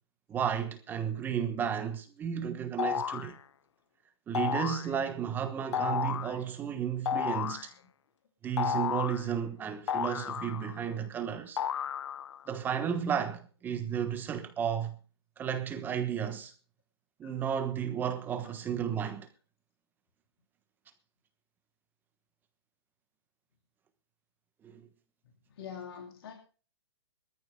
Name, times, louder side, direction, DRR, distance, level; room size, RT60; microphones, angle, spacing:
voice 1, 0.3-3.4 4.3-7.7 8.4-11.6 12.5-15.0 15.4-16.5 17.2-19.3 24.6-24.8, right 8 dB, 15° right, 1.2 m, -33 dB
sound 1, 2.8-3.3 4.3-4.9 5.7-6.3 7.1-7.7 8.6-9.3 9.9-10.8 11.6-12.4, left 8 dB, 80° left, 0.7 m, -32 dB
voice 2, 25.5-26.3, left 7 dB, 60° left, 3.4 m, -43 dB
23.0 x 14.5 x 2.3 m
hypercardioid pair, 160°, 15 cm